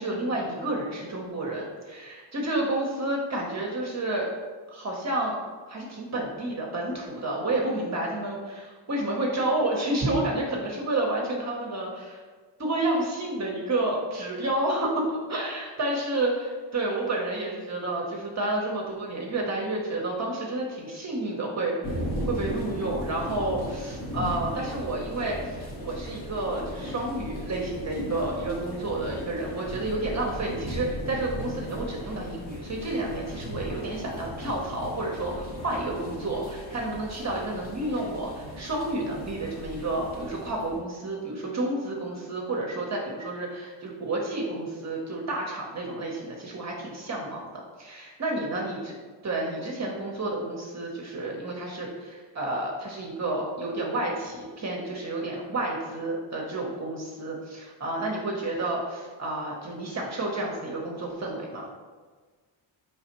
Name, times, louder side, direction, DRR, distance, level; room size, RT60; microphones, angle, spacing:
voice 1, 0.0-4.3 4.7-5.4 5.7-12.2 12.6-47.4 47.8-48.9 49.2-61.7, right 2 dB, 35° right, -1 dB, 0.8 m, -30 dB
sound 1, 21.8-40.8, equal, 45° left, 1.2 m, -37 dB
4.0 x 3.3 x 2.9 m, 1.4 s
cardioid pair, 75°, 47 cm